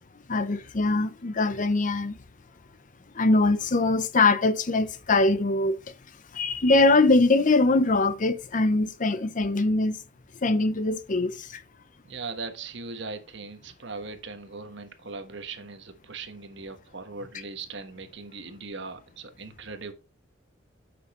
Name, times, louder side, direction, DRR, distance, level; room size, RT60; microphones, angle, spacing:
voice 1, 0.3-2.2 3.1-5.8 6.3-10.0 10.4-11.6, left 2 dB, 40° left, 0.7 m, -22 dB
voice 2, 12.0-19.9, right 4 dB, 65° right, 1.3 m, -39 dB
8.9 x 6.1 x 3.1 m
head